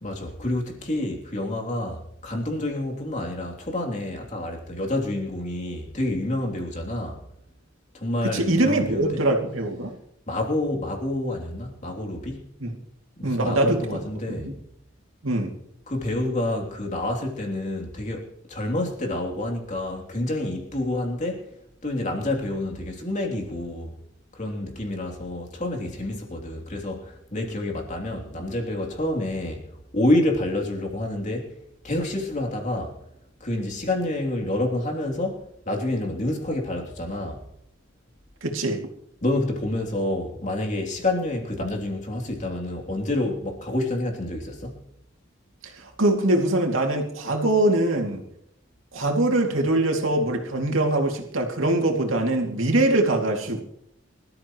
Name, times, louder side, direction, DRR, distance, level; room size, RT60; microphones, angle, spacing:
voice 1, 0.0-7.2 7.9-9.3 10.3-12.5 13.2-14.5 15.9-21.5 21.8-23.9 24.3-31.6 31.8-33.0 33.4-37.4 39.2-44.8, left 1 dB, 40° left, 3.2 m, -28 dB
voice 2, 8.2-9.9 12.6-12.8 13.2-14.0 14.3-14.5 15.2-15.5 38.4-38.8 45.8-48.2 48.9-53.6, right 1 dB, 80° right, 2.7 m, -23 dB
24.5 x 13.5 x 3.1 m
head